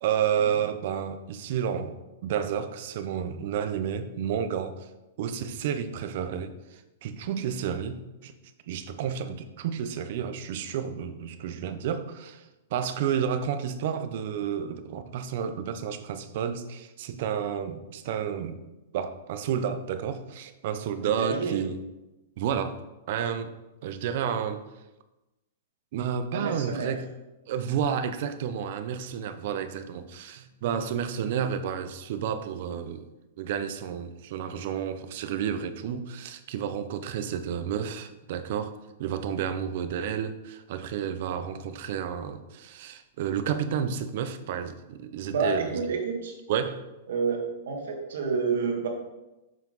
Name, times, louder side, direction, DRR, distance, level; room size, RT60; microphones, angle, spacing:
voice 1, 0.0-1.9 2.2-4.9 5.2-8.3 8.7-12.4 12.7-18.6 18.9-21.8 22.4-22.8 23.1-23.5 23.8-24.6 25.9-27.1 27.5-33.1 33.4-38.7 39.0-45.8 46.5-46.9, right 8 dB, 40° right, 10 dB, 0.5 m, -31 dB
voice 2, 21.0-21.6 26.3-26.9 45.2-46.4 47.1-47.4 47.7-48.9, right 5 dB, 65° right, 2 dB, 1.8 m, -29 dB
7.4 x 5.6 x 3.9 m, 1.0 s
supercardioid pair, 180°, 0 cm